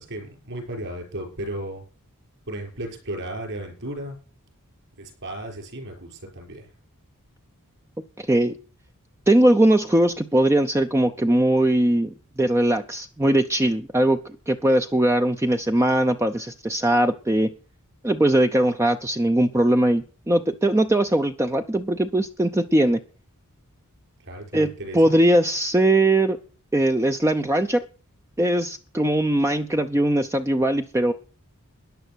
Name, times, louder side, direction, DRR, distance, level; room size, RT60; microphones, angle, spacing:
voice 1, 0.0-1.8 2.5-4.2 5.0-6.7 24.2-25.1, right 1 dB, 60° right, 3 dB, 5.9 m, -35 dB
voice 2, 8.2-8.6 9.3-14.2 14.5-17.5 18.0-23.0 24.5-26.4 26.7-27.8 28.4-31.1, right 1 dB, 10° right, 6 dB, 0.6 m, -20 dB
13.5 x 10.0 x 6.3 m, 0.39 s
head